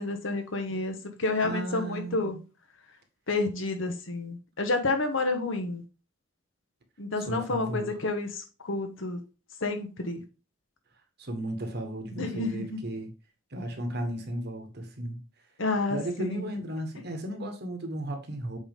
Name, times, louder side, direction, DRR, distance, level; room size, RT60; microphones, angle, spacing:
voice 1, 0.0-2.4 3.3-5.8 7.0-9.2 9.6-10.2 12.2-12.8 15.6-16.5, left 3 dB, 70° left, 1.2 m, -30 dB
voice 2, 1.4-2.4 7.2-7.9 11.2-13.1 13.5-15.2 15.9-18.6, right 1 dB, 55° right, 1.4 m, -35 dB
7.8 x 4.1 x 3.7 m
head